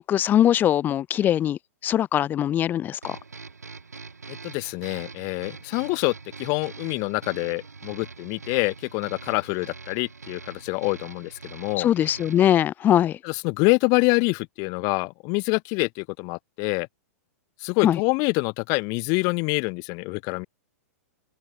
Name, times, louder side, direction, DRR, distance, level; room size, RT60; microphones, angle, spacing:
voice 1, 0.0-3.2 11.8-13.2 17.8-18.0, left 11 dB, 20° left, 0.4 m, -21 dB
sound 1, 3.0-12.6, right 4 dB, 90° right, 6.9 m, -43 dB
voice 2, 4.3-11.9 13.2-16.9 17.6-20.5, left 31 dB, 40° left, 2.0 m, -26 dB
open air
hypercardioid pair, 110°, 8 cm